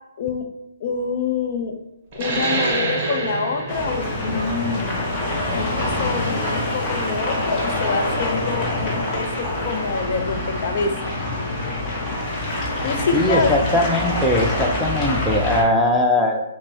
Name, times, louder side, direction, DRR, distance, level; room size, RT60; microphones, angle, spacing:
voice 1, 0.8-1.7 2.1-5.1 5.6-11.2 12.8-13.6, left 4 dB, 45° left, 4 dB, 0.6 m, -26 dB
sound 1, 2.1-7.3, right 2 dB, 30° right, 0.8 m, -27 dB
sound 2, 3.7-15.6, left 1 dB, 20° left, 0.9 m, -25 dB
voice 2, 13.1-16.4, left 1 dB, 5° left, -1 dB, 0.3 m, -20 dB
5.2 x 2.1 x 2.7 m, 0.89 s
hypercardioid pair, 155°, 0 cm